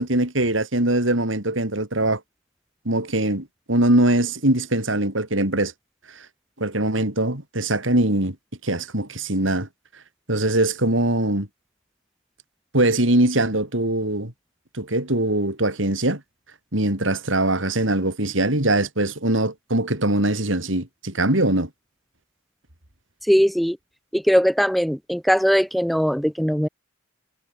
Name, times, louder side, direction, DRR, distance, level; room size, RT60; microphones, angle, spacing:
voice 1, 0.0-2.2 2.8-5.7 6.6-8.3 8.6-9.7 10.3-11.5 12.7-14.3 14.7-16.2 16.7-21.7, right 1 dB, 85° right, 5.1 m, -22 dB
voice 2, 23.3-23.8 24.1-26.7, equal, ahead, 0.3 m, -20 dB
head